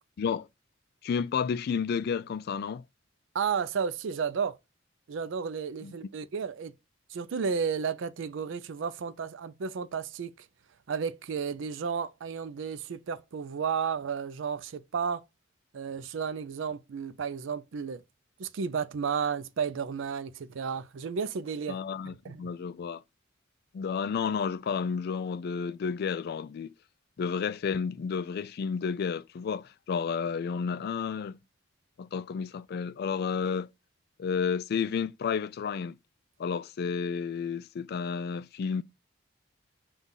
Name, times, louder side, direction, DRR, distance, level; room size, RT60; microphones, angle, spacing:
voice 1, 0.2-0.5 1.0-2.8 5.8-5.9 21.7-23.0 23.7-26.7 27.2-31.4 32.0-33.7 34.2-36.0 36.4-38.8, left 6 dB, 55° left, 0.3 m, -31 dB
voice 2, 3.3-4.6 5.1-6.8 7.1-10.5 10.9-15.2 15.7-18.0 18.4-21.8 22.0-22.4, right 6 dB, 70° right, 0.4 m, -32 dB
5.5 x 2.3 x 3.7 m
head